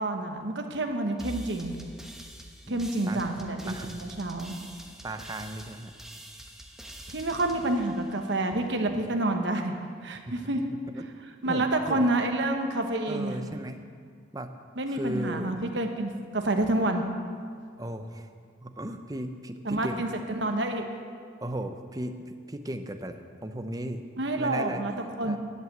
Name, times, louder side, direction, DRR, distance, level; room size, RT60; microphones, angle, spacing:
voice 1, 0.0-1.7 2.7-4.5 7.1-9.7 10.0-10.6 11.4-13.4 14.8-17.0 19.6-20.8 24.2-24.9 25.2-25.4, right 2 dB, 70° right, 4 dB, 1.2 m, -28 dB
sound 1, 1.2-8.7, right 1 dB, ahead, 0.9 m, -46 dB
voice 2, 2.7-3.2 3.7-3.9 5.0-5.9 10.3-10.6 10.9-11.1 11.5-12.1 13.1-13.8 14.3-14.5 14.9-15.5 17.8-18.3 18.6-20.0 21.4-22.2 22.5-24.0 24.4-24.8 25.2-25.4, right 1 dB, 20° right, 7 dB, 0.6 m, -36 dB
11.0 x 7.8 x 7.9 m, 2.1 s
head